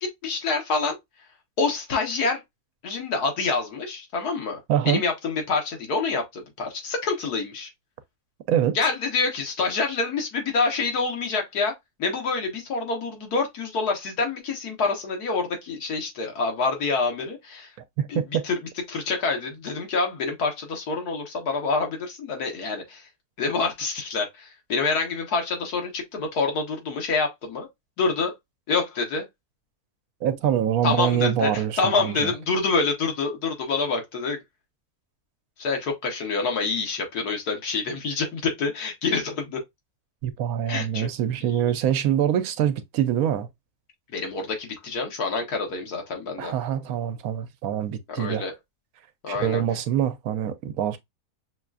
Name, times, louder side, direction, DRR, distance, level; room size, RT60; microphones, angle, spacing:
voice 1, 0.0-1.0 1.6-2.4 2.8-4.6 4.8-7.7 8.7-17.7 18.1-18.6 18.9-23.1 23.4-27.7 28.0-28.3 28.7-29.2 30.8-34.4 35.6-39.6 40.7-41.1 41.5-41.6 44.1-46.5 48.1-48.5 49.2-49.6, left 4 dB, 90° left, 1.7 m, -27 dB
voice 2, 4.7-5.0 8.5-8.8 18.0-18.4 30.2-32.3 40.2-43.5 46.4-48.4 49.3-51.0, right 10 dB, 75° right, 1.0 m, -25 dB
5.8 x 2.4 x 2.3 m
omnidirectional pair, 1.6 m